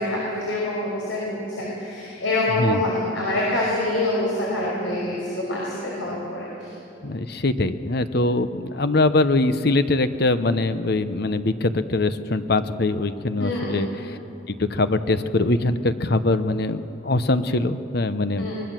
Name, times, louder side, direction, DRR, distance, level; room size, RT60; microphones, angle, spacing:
voice 1, 0.0-6.7 13.4-13.8 18.4-18.5, left 1 dB, 80° left, -5 dB, 5.3 m, -26 dB
voice 2, 7.0-14.2 14.5-18.5, left 2 dB, 55° left, 11 dB, 0.9 m, -22 dB
24.5 x 20.5 x 7.6 m, 2.8 s
head